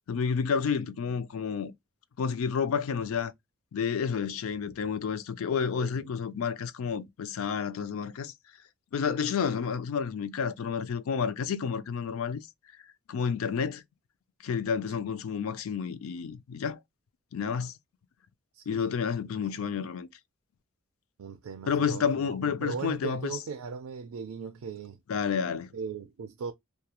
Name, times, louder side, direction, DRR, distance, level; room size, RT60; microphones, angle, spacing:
voice 1, 0.1-1.7 2.2-3.3 3.7-8.3 8.9-12.5 13.1-13.8 14.4-16.8 17.3-17.8 18.7-20.1 21.7-23.4 25.1-25.7, left 6 dB, 75° left, 0.4 m, -30 dB
voice 2, 18.5-18.8 19.3-19.4 21.2-25.0 25.7-26.5, right 6 dB, 90° right, 0.4 m, -39 dB
2.9 x 2.3 x 2.2 m
head